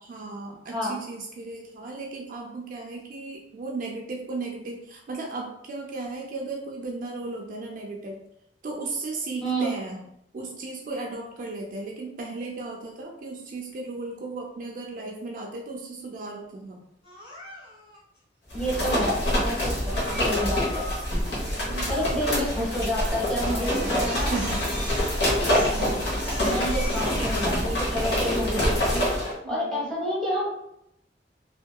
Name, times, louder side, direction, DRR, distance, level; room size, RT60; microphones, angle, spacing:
voice 1, 0.1-8.2 8.6-10.0 10.3-16.8 19.9-20.5 21.4-21.9 23.4-24.8 25.5-26.2 29.4-29.9, right 3 dB, 50° right, 0 dB, 0.3 m, -36 dB
Crying sobbing, 17.0-18.0 22.7-23.0 23.4-27.5, left 1 dB, 30° left, 1.1 m, -40 dB
sound 1, 18.5-29.3, left 1 dB, 65° left, 0.9 m, -26 dB
voice 2, 18.5-19.9 20.2-20.9 21.9-24.3 26.5-29.0 29.5-30.5, equal, 5° left, -6 dB, 1.0 m, -29 dB
2.7 x 2.2 x 2.2 m, 0.79 s
head